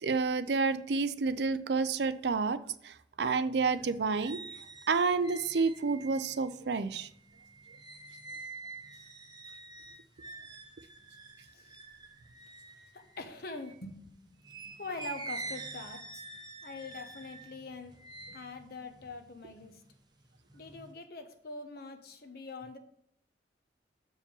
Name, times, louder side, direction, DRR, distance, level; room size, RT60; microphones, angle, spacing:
voice 1, 0.0-2.6 2.8-4.4 4.9-7.1, right 4 dB, 65° right, 13 dB, 0.5 m, -29 dB
sound 1, 3.7-13.9 14.4-19.9 20.3-20.9, right 3 dB, 25° right, 0.9 m, -47 dB
voice 2, 12.9-14.4 14.7-16.3 16.6-17.9 18.2-19.8 20.5-22.8, left 3 dB, 55° left, 6 dB, 1.0 m, -44 dB
6.8 x 4.9 x 7.0 m, 0.69 s
head